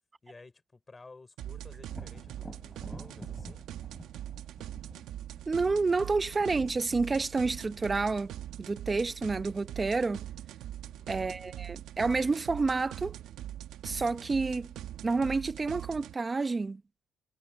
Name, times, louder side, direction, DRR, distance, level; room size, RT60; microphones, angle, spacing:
voice 1, 0.2-3.6 10.8-11.2, left 3 dB, 25° left, 4.9 m, -54 dB
sound 1, 1.4-16.1, right 12 dB, 85° right, 1.2 m, -42 dB
Thunder, 1.9-9.6 13.2-13.3 13.8-14.7, equal, ahead, 5.9 m, -51 dB
voice 2, 5.5-8.3 8.6-10.2 11.1-13.2 13.8-14.7 15.0-16.8, right 3 dB, 30° right, 1.1 m, -29 dB
cardioid pair, 90°, 0 cm